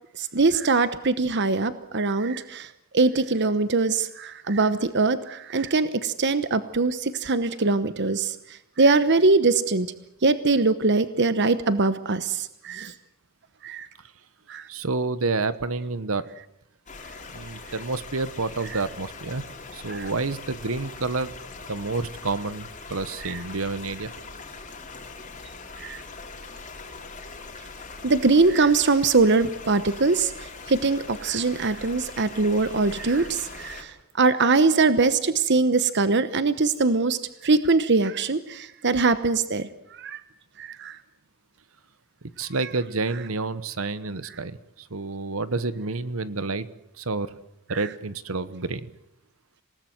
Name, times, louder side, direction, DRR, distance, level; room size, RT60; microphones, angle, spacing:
voice 1, 0.2-2.7 2.9-8.3 8.8-9.9 10.2-12.9 13.6-13.9 14.5-14.7 19.9-20.1 23.2-23.4 25.8-26.0 28.0-30.3 30.7-39.7 40.0-40.2 40.6-41.0 47.7-47.8, right 3 dB, 50° right, 12 dB, 1.0 m, -22 dB
voice 2, 14.7-16.2 17.3-19.4 19.7-21.3 21.7-24.1 42.4-46.7 47.0-47.3 47.7-48.9, right 3 dB, 65° right, 15 dB, 1.1 m, -29 dB
sound 1, 16.9-33.8, left 4 dB, 35° left, 3.4 m, -41 dB
27.5 x 18.5 x 7.9 m, 0.78 s
head